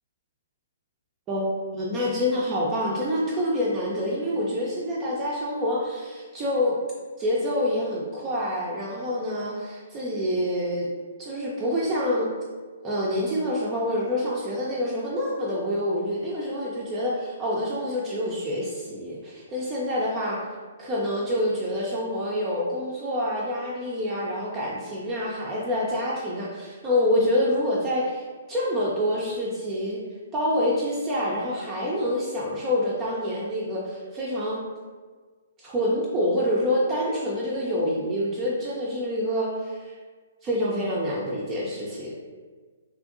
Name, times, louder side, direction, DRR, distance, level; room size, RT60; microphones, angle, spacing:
voice 1, 1.3-6.7 7.2-10.9 11.2-12.3 12.8-20.4 20.8-30.0 30.3-34.6 35.6-39.9 40.4-42.1, left 1 dB, 25° right, -5 dB, 0.4 m, -27 dB
2.7 x 2.5 x 2.5 m, 1.5 s
hypercardioid pair, 135°, 0 cm